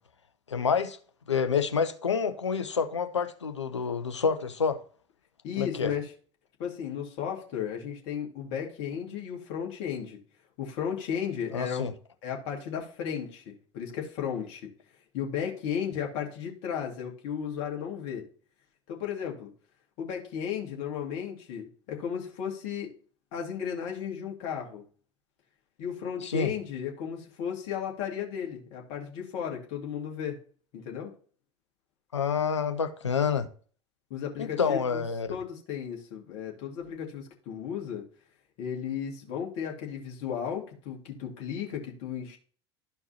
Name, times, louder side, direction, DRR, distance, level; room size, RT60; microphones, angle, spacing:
voice 1, 0.5-1.0 1.3-4.8 5.6-5.9 11.5-11.9 26.2-26.5 32.1-33.5 34.4-35.3, left 6 dB, 80° left, 0.8 m, -28 dB
voice 2, 5.4-6.1 6.6-10.2 10.6-11.8 12.2-14.7 15.1-18.3 18.9-19.5 20.0-22.9 23.3-24.8 25.8-30.4 30.7-31.1 34.1-35.0 35.3-38.0 38.6-42.4, left 8 dB, 50° left, 2.1 m, -34 dB
13.0 x 4.6 x 2.9 m
figure-of-eight pair, 75°, 15 cm